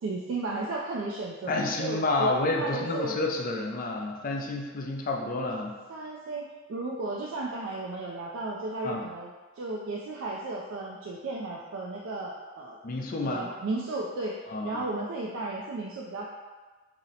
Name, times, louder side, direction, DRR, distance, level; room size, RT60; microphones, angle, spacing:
voice 1, 0.0-2.3 2.6-3.2 5.9-9.3 9.6-12.8 13.2-14.3 14.6-16.3, right 2 dB, 80° right, -3 dB, 0.4 m, -34 dB
voice 2, 1.5-5.7 8.8-9.1 12.8-13.5 14.5-14.8, left 2 dB, 45° left, 0 dB, 0.4 m, -29 dB
2.8 x 2.0 x 3.8 m, 1.3 s
head